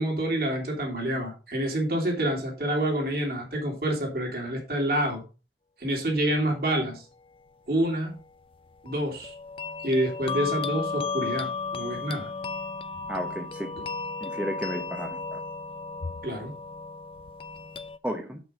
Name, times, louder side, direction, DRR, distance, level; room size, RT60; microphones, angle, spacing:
voice 1, 0.0-5.2 5.8-7.0 7.7-8.2 8.8-9.3 9.8-12.3 16.2-16.6, right 1 dB, 55° right, 0 dB, 3.3 m, -27 dB
sound 1, 8.9-18.0, left 4 dB, 30° left, 0.4 m, -34 dB
voice 2, 13.1-13.7 14.2-15.4 18.0-18.4, equal, 5° right, 3 dB, 0.8 m, -33 dB
7.0 x 6.1 x 5.2 m, 0.33 s
head